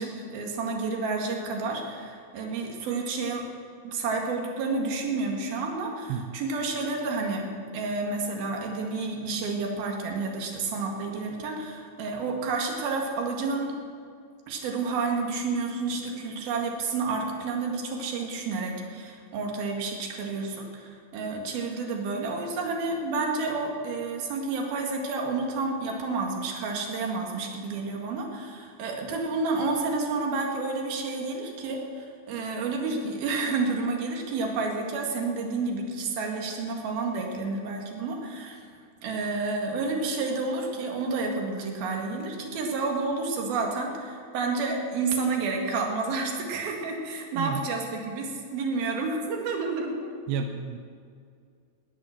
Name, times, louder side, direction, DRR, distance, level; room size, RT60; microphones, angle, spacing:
voice 1, 0.0-3.5 3.8-7.5 7.7-13.7 14.5-38.7 39.0-50.1, right 3 dB, 60° right, 1 dB, 3.6 m, -30 dB
voice 2, 6.1-6.4 47.4-47.6 50.3-50.8, right 7 dB, 85° right, 5 dB, 2.8 m, -31 dB
17.0 x 10.5 x 6.6 m, 2.2 s
omnidirectional pair, 5.1 m